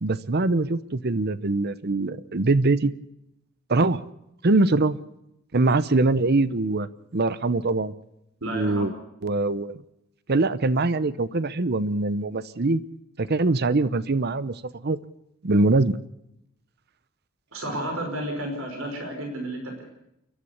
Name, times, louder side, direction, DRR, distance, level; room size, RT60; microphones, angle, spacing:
voice 1, 0.0-2.9 3.7-4.0 4.4-5.0 5.5-6.9 7.1-7.9 8.5-8.9 9.2-9.8 10.3-12.8 13.2-15.0 15.4-16.0, right 2 dB, 50° right, 16 dB, 0.8 m, -23 dB
voice 2, 8.4-8.9 17.5-19.9, right 1 dB, 75° right, 3 dB, 5.2 m, -32 dB
29.0 x 12.0 x 8.1 m, 0.82 s
head